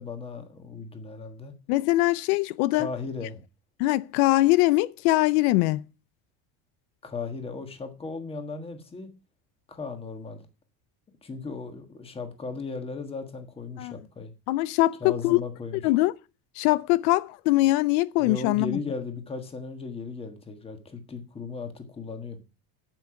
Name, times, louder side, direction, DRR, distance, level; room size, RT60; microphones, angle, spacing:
voice 1, 0.0-1.5 2.7-3.4 7.0-9.1 9.7-10.4 11.2-14.3 15.0-15.8 18.2-22.4, left 4 dB, 15° left, 1.4 m, -36 dB
voice 2, 1.7-2.9 3.8-5.8 13.8-13.9 14.5-15.4 15.8-16.1 16.6-18.8, left 18 dB, 85° left, 0.7 m, -22 dB
9.0 x 8.3 x 5.8 m
cardioid pair, 175°, 43 cm